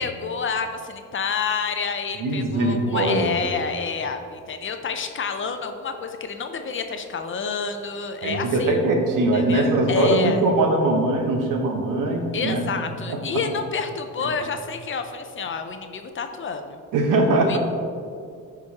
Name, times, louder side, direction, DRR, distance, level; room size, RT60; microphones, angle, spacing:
voice 1, 0.0-8.7 9.3-10.4 12.3-16.8 17.5-17.6, left 5 dB, 35° left, 7 dB, 0.5 m, -29 dB
voice 2, 2.2-3.4 8.2-12.7 13.1-13.2 14.2-14.3 16.9-17.6, right 2 dB, 70° right, 2 dB, 1.1 m, -21 dB
11.0 x 4.9 x 2.9 m, 2.3 s
cardioid pair, 115°, 34 cm